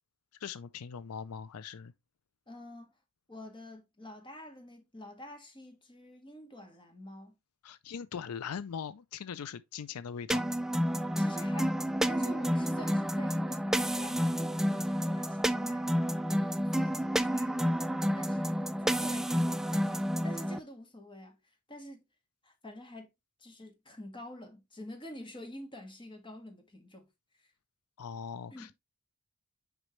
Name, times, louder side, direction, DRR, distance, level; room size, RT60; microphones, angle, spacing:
voice 1, 0.4-1.9 7.6-10.4 28.0-28.7, left 7 dB, 85° left, 0.4 m, -40 dB
voice 2, 2.5-2.9 3.3-7.3 11.2-21.4 21.7-22.0 22.4-23.1 23.4-27.1 27.4-27.5 28.5-28.7, left 1 dB, 20° left, 1.7 m, -48 dB
sound 1, 10.3-20.6, equal, ahead, 0.3 m, -30 dB
6.4 x 5.1 x 3.1 m
head